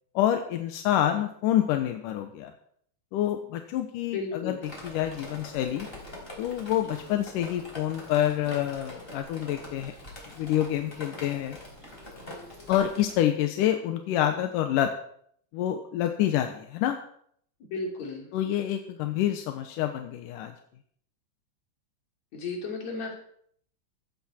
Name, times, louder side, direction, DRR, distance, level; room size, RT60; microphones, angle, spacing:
voice 1, 0.1-2.5 3.1-5.9 6.4-9.9 10.4-11.6 12.7-14.9 15.5-17.0 18.3-20.5, left 11 dB, 85° left, 6 dB, 2.5 m, -27 dB
voice 2, 4.1-4.6 17.7-18.3 22.3-23.1, left 3 dB, 60° left, 1 dB, 4.2 m, -33 dB
Drip, 4.6-13.1, left 1 dB, 15° left, 4.9 m, -44 dB
16.0 x 13.5 x 4.3 m, 0.64 s
omnidirectional pair, 3.6 m